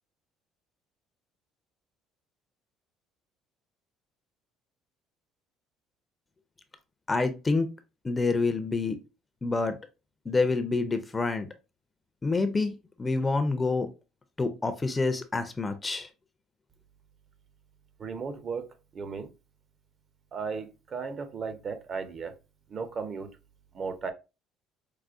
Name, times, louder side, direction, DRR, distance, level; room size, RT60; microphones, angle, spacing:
voice 1, 7.1-7.7 8.0-9.0 9.4-9.7 10.3-11.5 12.2-12.7 13.0-13.9 14.4-16.1, left 3 dB, 20° left, 0.5 m, -27 dB
voice 2, 18.0-18.6 18.9-19.3 20.3-22.3 22.7-23.3 23.7-24.1, right 5 dB, 40° right, 0.6 m, -35 dB
4.8 x 2.1 x 2.4 m
supercardioid pair, 100°, 0 cm